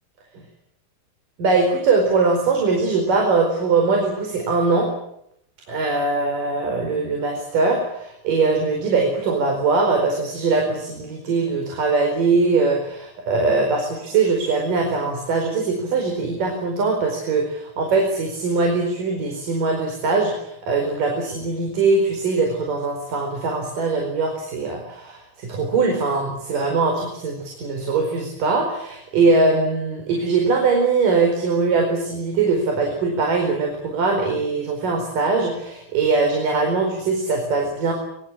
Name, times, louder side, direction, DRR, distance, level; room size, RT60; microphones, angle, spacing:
voice 1, 1.4-4.9 5.7-37.9, right 4 dB, 65° right, 2 dB, 6.3 m, -21 dB
24.0 x 24.0 x 9.0 m, 0.74 s
omnidirectional pair, 4.1 m